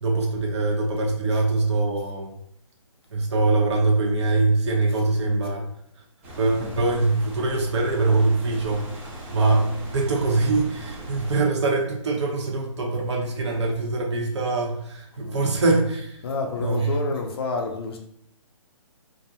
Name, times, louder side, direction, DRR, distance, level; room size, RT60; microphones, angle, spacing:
voice 1, 0.0-2.3 3.1-5.7 6.4-8.8 9.3-16.2 16.6-16.9, right 3 dB, 55° right, 0 dB, 0.9 m, -23 dB
sound 1, 6.2-11.4, right 1 dB, 20° right, 0.7 m, -39 dB
voice 2, 15.1-15.5 16.2-18.0, left 3 dB, 45° left, 3 dB, 0.5 m, -30 dB
2.6 x 2.1 x 2.8 m, 0.70 s
hypercardioid pair, 155°, 17 cm